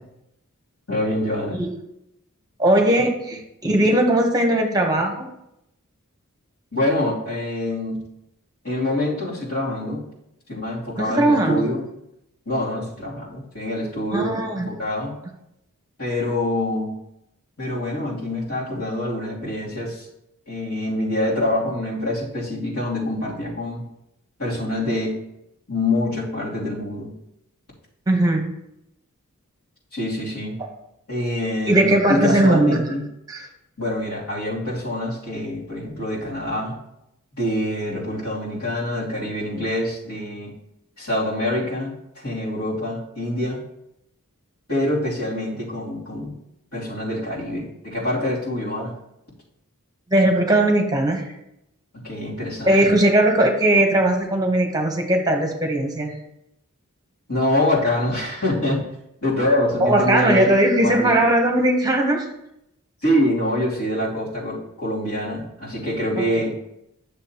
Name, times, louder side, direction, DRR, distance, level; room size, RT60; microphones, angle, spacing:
voice 1, 0.9-1.6 6.7-8.0 8.6-10.0 10.5-11.8 12.4-14.4 14.6-15.1 16.0-17.0 17.6-20.1 20.5-23.8 24.4-25.2 25.7-27.1 29.9-30.6 31.1-33.0 33.8-36.8 37.4-40.5 41.0-43.6 44.7-46.3 46.7-48.9 52.0-52.9 57.3-58.8 59.2-60.5 60.8-61.2 63.0-66.5, left 1 dB, 70° left, -7 dB, 2.9 m, -25 dB
voice 2, 2.6-5.3 11.0-11.7 14.1-14.7 28.1-28.5 31.7-32.8 33.3-33.5 48.8-48.9 50.1-51.3 52.6-56.2 59.8-62.3 66.2-66.3, right 1 dB, 15° right, 2 dB, 1.0 m, -19 dB
9.9 x 6.9 x 2.9 m, 0.83 s
head